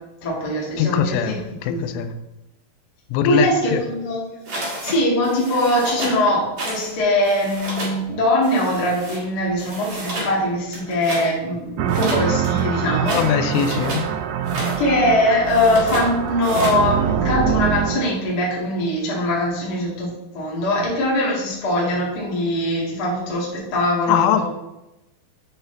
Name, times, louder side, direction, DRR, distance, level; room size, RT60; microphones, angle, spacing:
voice 1, 0.2-1.8 3.2-4.2 4.5-13.2 14.8-24.4, left 1 dB, 70° left, -5 dB, 0.9 m, -22 dB
voice 2, 0.8-2.1 3.1-3.8 13.1-14.0 24.1-24.4, left 9 dB, 90° left, 9 dB, 3.1 m, -21 dB
sound 1, 4.5-5.0 5.2-6.2 6.6-6.9 7.2-8.0 8.4-9.2 9.6-10.3 10.7-11.3 11.9-14.1 14.4-14.8 15.4-16.1 16.4-16.8, right 1 dB, 50° right, 1.7 m, -30 dB
sound 2, 11.8-18.1, right 8 dB, 85° right, 3.0 m, -24 dB
8.8 x 4.2 x 3.9 m, 0.95 s
omnidirectional pair, 5.5 m